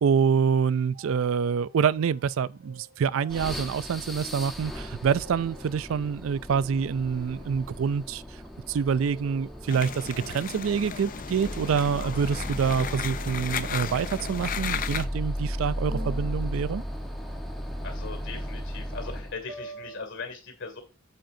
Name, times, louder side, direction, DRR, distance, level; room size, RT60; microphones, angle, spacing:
voice 1, 0.0-8.2 8.7-16.8, right 6 dB, 65° right, 0.3 m, -26 dB
sound 1, 0.9-6.4 7.1-8.7 9.0-10.3 11.9-14.9 15.9-20.0, right 1 dB, 45° right, 2.9 m, -49 dB
sound 2, 3.3-19.4, equal, ahead, 1.3 m, -36 dB
sound 3, 9.7-15.0, left 7 dB, 40° left, 0.5 m, -35 dB
voice 2, 17.8-20.8, left 4 dB, 60° left, 2.5 m, -39 dB
8.9 x 7.7 x 2.7 m
head